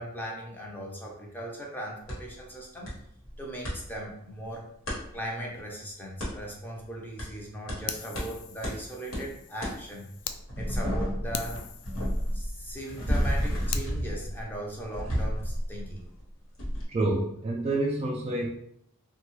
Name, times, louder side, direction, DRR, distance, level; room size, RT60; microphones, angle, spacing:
voice 1, 0.0-2.9 3.4-4.7 5.1-10.1 10.6-11.6 12.3-16.0, right 1 dB, 10° left, -2 dB, 0.6 m, -38 dB
sound 1, 2.1-2.2 2.9-3.0 3.2-3.8 4.9-5.0 6.2-6.3 7.2-7.3 7.7-7.8 8.1-8.3 8.6-8.8 9.1-9.2 9.6-9.7 10.2-16.2 16.6-16.8, equal, 65° left, 1.2 m, -31 dB
Fire, 7.9-10.4 10.8-10.9 11.3-13.9, left 9 dB, 85° left, 0.3 m, -41 dB
voice 2, 16.9-18.5, right 2 dB, 30° right, -1 dB, 0.3 m, -28 dB
2.8 x 2.3 x 3.0 m, 0.73 s
head